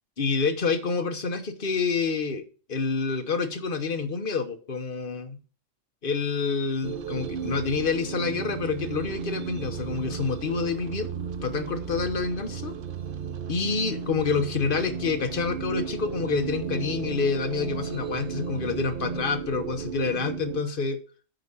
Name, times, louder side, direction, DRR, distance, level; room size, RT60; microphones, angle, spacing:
voice 1, 0.2-2.4 2.7-5.4 6.0-11.1 11.4-12.7 13.5-21.0, left 4 dB, 45° left, 7 dB, 1.3 m, -28 dB
sound 1, 6.8-20.6, right 7 dB, 50° right, 0.8 m, -34 dB
9.2 x 4.9 x 5.6 m, 0.38 s
omnidirectional pair, 1.3 m